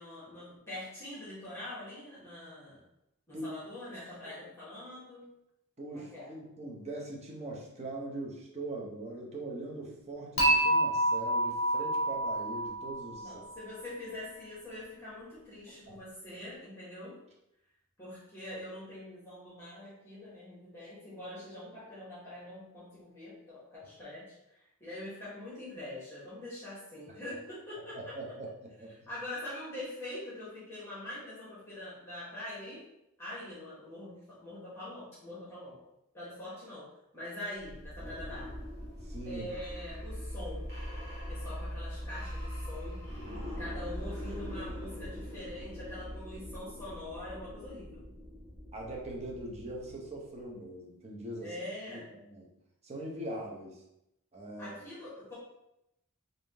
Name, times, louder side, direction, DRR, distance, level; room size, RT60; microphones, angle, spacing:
voice 1, 0.0-2.8 3.3-5.3 5.9-6.3 13.2-17.2 18.0-28.2 28.9-32.8 33.2-35.8 36.1-36.9 37.1-38.6 39.2-40.6 41.3-43.0 43.6-48.0 51.4-52.1 54.6-55.3, left 1 dB, 10° left, -10 dB, 1.2 m, -44 dB
voice 2, 5.8-13.4 15.9-16.0 27.9-28.5 28.8-29.1 39.0-39.5 43.2-43.8 48.7-51.5 52.1-52.5 52.8-53.8 54.3-54.8, right 1 dB, 30° right, -2 dB, 0.8 m, -41 dB
Dishes pots and pans / Chink clink, 10.4-13.5, right 1 dB, 35° left, 1.2 m, -28 dB
sound 1, 37.6-50.3, equal, 50° right, 1.3 m, -41 dB
3.5 x 2.6 x 3.4 m, 0.85 s
head